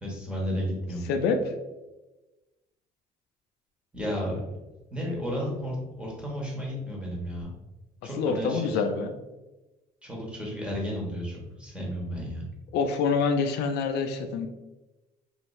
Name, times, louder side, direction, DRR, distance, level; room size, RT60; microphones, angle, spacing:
voice 1, 0.0-1.0 3.9-4.3 4.9-7.5 8.0-8.8 10.0-12.5, equal, 5° right, -4 dB, 1.3 m, -33 dB
voice 2, 1.1-1.4 8.2-9.1 12.7-14.5, left 5 dB, 80° left, 6 dB, 0.4 m, -26 dB
3.0 x 2.7 x 3.1 m, 1.1 s
cardioid pair, 110°, 17 cm